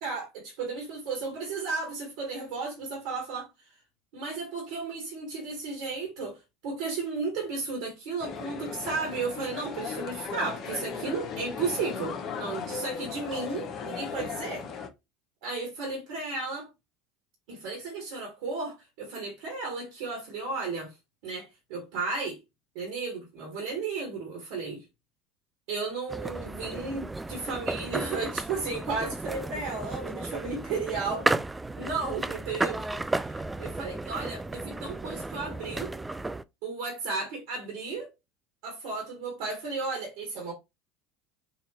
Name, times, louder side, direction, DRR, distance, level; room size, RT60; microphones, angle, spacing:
voice 1, 0.0-3.5 4.1-14.7 15.4-16.7 17.5-20.9 21.2-22.4 22.7-24.8 25.7-31.4 31.7-36.0 36.6-38.1 38.6-40.5, right 4 dB, 65° right, 1.5 m, -34 dB
sound 1, 8.2-14.9, left 6 dB, 45° left, 0.9 m, -37 dB
sound 2, 26.1-36.4, right 2 dB, 10° right, 0.3 m, -33 dB
4.2 x 2.5 x 2.9 m
hypercardioid pair, 75°, 0 cm